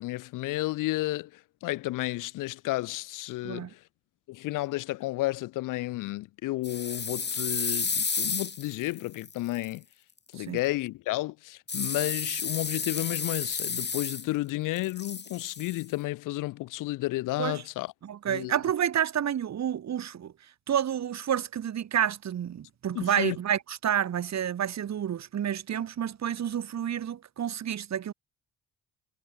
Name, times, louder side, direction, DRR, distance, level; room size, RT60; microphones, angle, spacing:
voice 1, 0.0-3.8 4.3-9.8 10.3-17.9 18.3-18.5 22.9-23.4, left 18 dB, 90° left, 0.5 m, -32 dB
sound 1, 6.6-9.7 11.7-14.5 14.8-15.8, left 5 dB, 35° left, 1.7 m, -32 dB
voice 2, 18.0-20.3 20.7-28.1, right 9 dB, 60° right, 1.3 m, -29 dB
cardioid pair, 65°, 31 cm